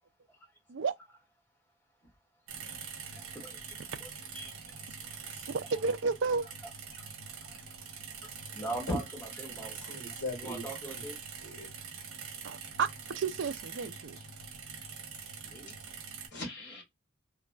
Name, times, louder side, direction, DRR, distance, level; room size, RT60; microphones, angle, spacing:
sound 1, 2.5-16.3, right 5 dB, 80° right, 0.9 m, -44 dB
voice 1, 2.9-5.5 6.9-9.8 10.4-11.2 15.4-15.7, right 2 dB, 10° left, 1.1 m, -44 dB
voice 2, 5.5-6.4 12.4-14.2, right 5 dB, 55° right, 0.4 m, -32 dB
voice 3, 9.4-11.0 11.4-11.7 15.7-15.8 16.3-16.8, left 1 dB, 55° left, 1.5 m, -39 dB
3.0 x 2.5 x 2.2 m
head